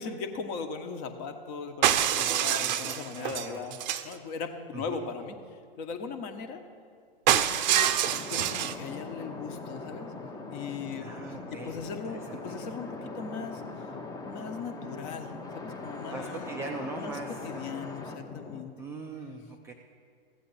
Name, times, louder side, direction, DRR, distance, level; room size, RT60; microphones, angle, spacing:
voice 1, 0.0-5.4 5.8-6.6 7.3-10.1 10.5-13.6 14.3-16.5 17.0-18.7, left 5 dB, 40° left, 7 dB, 1.1 m, -39 dB
sound 1, 1.8-4.1 7.3-8.8, right 11 dB, 50° right, 0.6 m, -26 dB
voice 2, 2.2-2.9 3.2-3.6 4.7-5.0 11.0-11.8 12.3-12.4 16.1-17.4 18.8-19.7, right 3 dB, 10° right, 2 dB, 0.3 m, -40 dB
sound 2, 8.0-18.6, left 3 dB, 10° left, 0.7 m, -41 dB
15.0 x 8.5 x 4.1 m, 2.2 s
figure-of-eight pair, 105°, 30 cm